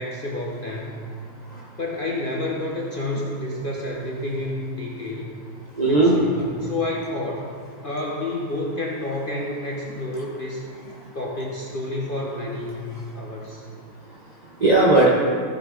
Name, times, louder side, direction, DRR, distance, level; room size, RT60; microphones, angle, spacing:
voice 1, 0.0-1.0 1.8-5.3 5.8-7.5 7.8-10.6 11.1-12.9 13.1-13.6, left 1 dB, 45° left, -3 dB, 0.7 m, -29 dB
voice 2, 1.2-1.8 5.7-6.1 10.0-10.3 10.8-11.2 12.7-13.7 14.0-15.1, right 2 dB, 45° right, -4 dB, 0.5 m, -22 dB
15.0 x 6.1 x 3.8 m, 2.1 s
omnidirectional pair, 2.2 m